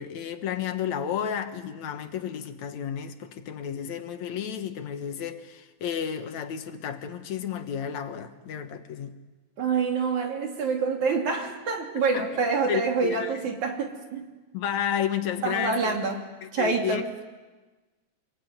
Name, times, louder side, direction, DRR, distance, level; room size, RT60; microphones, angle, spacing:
voice 1, 0.0-9.2 12.0-12.3 12.7-13.4 14.5-16.0 16.4-17.2, left 8 dB, 75° left, 7 dB, 2.7 m, -32 dB
voice 2, 9.6-14.2 15.4-16.2 16.5-17.0, right 5 dB, 80° right, 2 dB, 4.3 m, -26 dB
26.0 x 22.0 x 9.3 m, 1.2 s
omnidirectional pair, 3.3 m